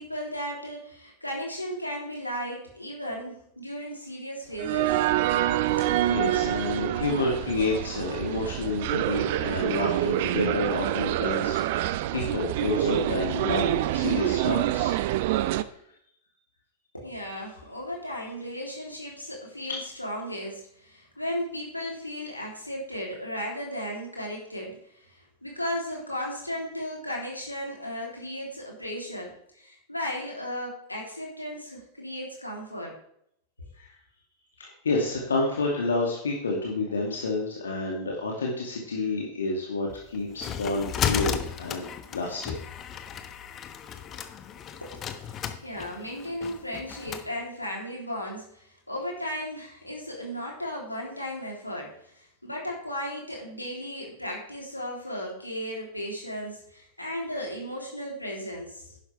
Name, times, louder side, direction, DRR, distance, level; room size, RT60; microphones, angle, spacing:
voice 1, 0.0-5.0 5.8-6.0 16.9-32.9 44.8-59.0, equal, 85° left, -2 dB, 3.2 m, -35 dB
sound 1, 4.6-15.6, right 14 dB, 50° right, 0.5 m, -26 dB
voice 2, 5.8-14.9 15.2-15.5 33.7-33.9 34.6-41.9 42.1-42.5, left 2 dB, 70° left, -2 dB, 2.3 m, -29 dB
sound 2, 39.9-47.3, left 8 dB, 30° left, 1.0 m, -34 dB
11.5 x 10.5 x 3.4 m, 0.70 s
figure-of-eight pair, 90°, 0 cm